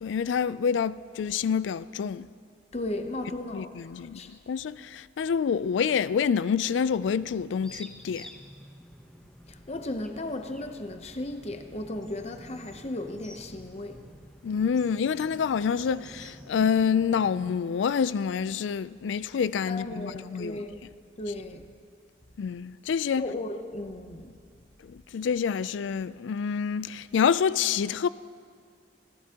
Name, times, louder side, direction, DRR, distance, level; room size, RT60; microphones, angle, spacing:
voice 1, 0.0-2.3 3.5-4.2 4.5-8.3 14.4-20.7 22.4-23.2 24.8-28.1, left 6 dB, 85° left, 0.3 m, -27 dB
voice 2, 2.7-4.3 9.5-14.0 19.7-20.8 21.2-21.6 23.2-24.3, left 1 dB, 35° left, 0.7 m, -35 dB
sound 1, 6.8-17.5, equal, 5° left, 0.9 m, -50 dB
21.5 x 16.0 x 2.9 m
head